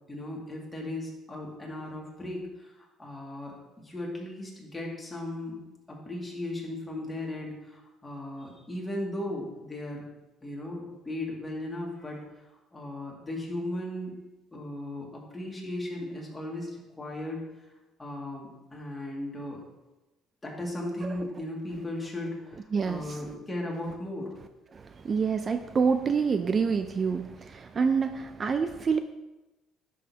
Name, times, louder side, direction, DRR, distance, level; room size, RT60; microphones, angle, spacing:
voice 1, 0.1-3.5 3.8-5.6 5.9-10.0 10.4-12.3 12.7-14.2 14.5-16.7 17.0-17.5 18.0-19.6 20.4-24.4, left 1 dB, 15° left, -2 dB, 2.1 m, -36 dB
voice 2, 22.5-23.2 24.7-29.0, right 5 dB, 35° right, 9 dB, 0.4 m, -27 dB
10.5 x 6.4 x 2.8 m, 1.0 s
cardioid pair, 120°, 0 cm